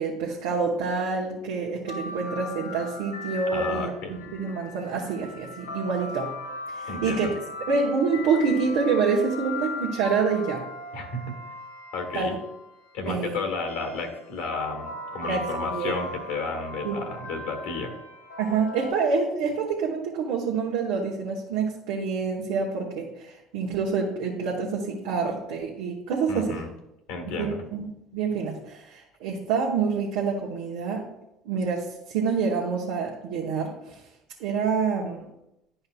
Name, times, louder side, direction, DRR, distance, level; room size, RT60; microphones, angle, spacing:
voice 1, 0.0-6.3 6.7-7.3 7.7-10.6 12.1-12.4 13.0-13.4 15.2-16.0 16.8-17.0 18.4-26.6 27.4-31.1 31.4-34.0 34.4-35.2, right 5 dB, 70° right, -2 dB, 1.1 m, -27 dB
sound 1, 1.9-12.8 13.7-18.9, left 3 dB, 90° left, 1.0 m, -38 dB
voice 2, 3.5-4.1 6.9-7.3 10.9-11.2 11.9-12.3 12.9-17.9 26.3-26.7 27.1-27.6, left 3 dB, 70° left, 4 dB, 1.6 m, -32 dB
11.0 x 5.4 x 2.3 m, 0.87 s
hypercardioid pair, 70°, 0 cm